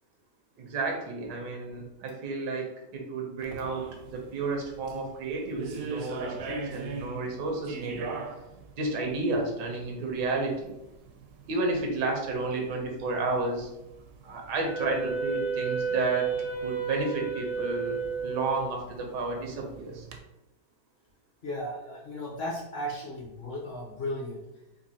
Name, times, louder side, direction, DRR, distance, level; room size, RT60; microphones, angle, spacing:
voice 1, 0.6-8.1 8.8-10.7 11.5-13.7 14.2-16.3 16.6-20.1, right 3 dB, 90° right, 1 dB, 1.4 m, -31 dB
sound 1, 3.4-20.2, right 4 dB, 70° right, 0.8 m, -44 dB
Wind instrument woodwind instrument, 14.7-19.0, right 5 dB, 90° left, 1.5 m, -32 dB
voice 2, 21.4-24.4, left 1 dB, 55° left, -3 dB, 0.7 m, -35 dB
4.1 x 2.6 x 2.7 m, 0.91 s
omnidirectional pair, 1.8 m